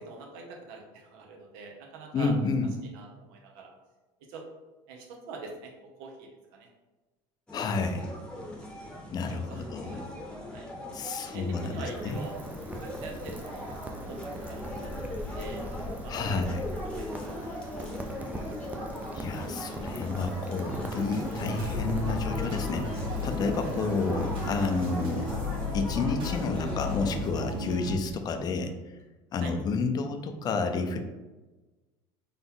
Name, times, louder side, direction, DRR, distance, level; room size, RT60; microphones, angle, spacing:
voice 1, 0.0-2.3 2.9-3.7 4.3-4.4 4.9-5.7 6.0-6.7 9.2-10.1 10.5-10.7 11.3-12.4 12.8-13.7 14.1-15.6 16.0-18.1 23.6-23.8 24.6-24.7 28.1-28.2 29.4-29.5, right 3 dB, 80° right, 1 dB, 1.0 m, -45 dB
voice 2, 2.1-2.7 7.5-8.1 9.1-10.0 10.9-12.2 16.1-16.7 19.1-25.3 25.7-28.8 29.3-31.0, left 4 dB, 35° left, 6 dB, 0.5 m, -30 dB
sound 1, 7.5-27.2, left 1 dB, 10° left, 0.9 m, -40 dB
Rain, 11.0-25.9, right 1 dB, 15° right, 0.5 m, -41 dB
sound 2, 21.0-27.9, left 2 dB, 45° right, 1.3 m, -34 dB
4.0 x 2.9 x 3.7 m, 1.1 s
supercardioid pair, 125°, 12 cm